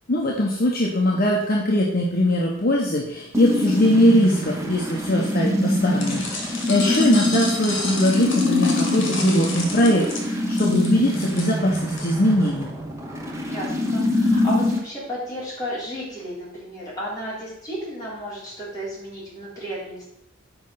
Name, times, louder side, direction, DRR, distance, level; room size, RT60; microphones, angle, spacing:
voice 1, 0.1-12.7, left 1 dB, 50° left, -2 dB, 1.0 m, -21 dB
sound 1, 3.3-14.8, left 1 dB, 15° right, 1.1 m, -24 dB
sound 2, 6.0-12.0, left 2 dB, 70° left, 2.2 m, -31 dB
voice 2, 13.5-20.1, equal, 20° left, -8 dB, 3.7 m, -33 dB
7.2 x 5.2 x 5.7 m, 0.78 s
head